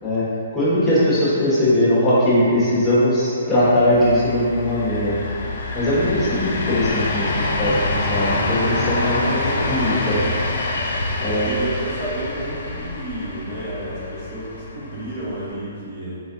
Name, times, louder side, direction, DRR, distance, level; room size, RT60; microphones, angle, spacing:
voice 1, 0.5-5.2 5.7-10.2 11.2-11.5, left 1 dB, 10° left, -10 dB, 1.3 m, -20 dB
sound 1, 3.6-15.6, left 2 dB, 60° left, 0.6 m, -26 dB
voice 2, 9.1-10.1 11.3-16.2, right 1 dB, 45° right, -7 dB, 0.9 m, -31 dB
4.5 x 3.2 x 2.7 m, 2.5 s
hypercardioid pair, 140°, 0 cm